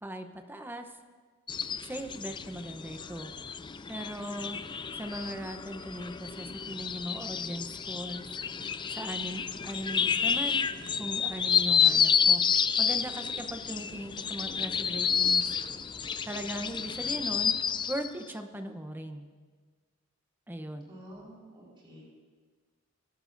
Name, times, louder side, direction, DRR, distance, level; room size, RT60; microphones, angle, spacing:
voice 1, 0.0-0.9 1.8-3.3 3.9-4.6 4.9-8.3 8.9-10.6 11.0-12.4 12.8-15.5 16.2-17.6 17.9-19.3 20.5-20.9, right 1 dB, 10° right, 7 dB, 0.8 m, -39 dB
sound 1, 1.5-18.1, left 7 dB, 25° left, 0.4 m, -30 dB
voice 2, 20.9-22.0, equal, 25° right, -6 dB, 4.2 m, -49 dB
23.5 x 12.0 x 2.6 m, 1.5 s
head